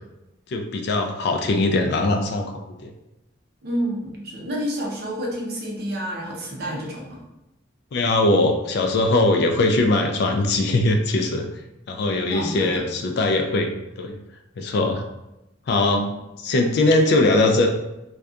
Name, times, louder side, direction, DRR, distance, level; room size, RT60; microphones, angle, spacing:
voice 1, 0.5-2.9 7.9-11.5 11.9-14.2 14.6-15.0 15.7-16.1 16.4-17.7, left 2 dB, 55° left, 3 dB, 0.3 m, -21 dB
voice 2, 3.6-7.2 12.3-12.9 16.1-16.2, equal, 55° right, -2 dB, 0.6 m, -29 dB
2.6 x 2.2 x 2.3 m, 0.91 s
head